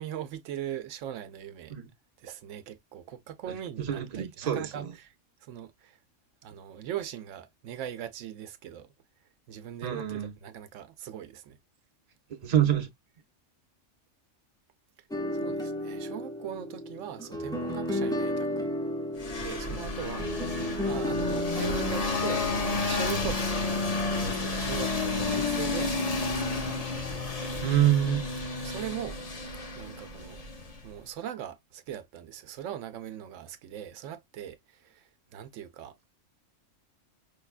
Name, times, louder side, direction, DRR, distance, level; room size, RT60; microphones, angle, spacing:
voice 1, 0.0-1.7 2.2-5.1 5.4-6.0 6.4-8.9 9.5-11.6 15.3-18.7 19.4-26.7 28.6-29.2 29.7-30.4 30.8-36.0, right 10 dB, 90° right, 0.9 m, -40 dB
voice 2, 3.5-4.9 9.8-10.3 12.3-12.9 21.3-21.5 27.6-28.2, right 11 dB, 40° right, 0.7 m, -27 dB
sound 1, 15.1-22.8, equal, 5° left, 0.5 m, -33 dB
sound 2, 19.2-30.9, left 3 dB, 40° left, 0.7 m, -31 dB
5.0 x 2.2 x 2.3 m
omnidirectional pair, 1.2 m